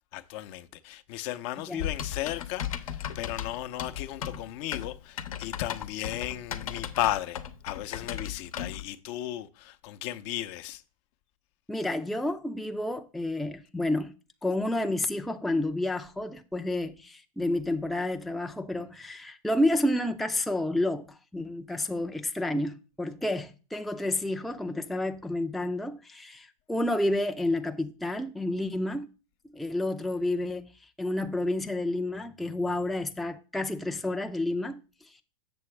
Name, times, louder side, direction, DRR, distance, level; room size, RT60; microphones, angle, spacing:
voice 1, 0.1-7.4 7.6-10.8, left 14 dB, 50° left, 0.7 m, -35 dB
Typing, 1.8-8.8, left 9 dB, 80° left, 0.9 m, -36 dB
voice 2, 11.7-14.1 14.4-29.1 29.5-30.7 31.0-35.2, left 1 dB, ahead, 0.5 m, -30 dB
7.5 x 7.0 x 3.2 m
hypercardioid pair, 100°, 18 cm